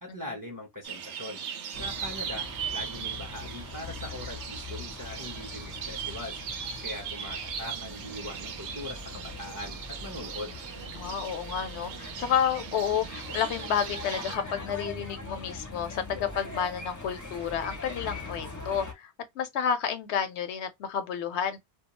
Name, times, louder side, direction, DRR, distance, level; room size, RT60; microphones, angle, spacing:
voice 1, 0.0-1.4 1.7-10.6, left 1 dB, 20° right, 0.6 m, -41 dB
sound 1, 0.8-14.4, right 8 dB, 85° right, 0.9 m, -39 dB
sound 2, 1.7-18.9, left 3 dB, 20° left, 0.5 m, -42 dB
voice 2, 10.9-21.6, left 8 dB, 80° left, 0.9 m, -30 dB
2.3 x 2.2 x 2.9 m
omnidirectional pair, 1.1 m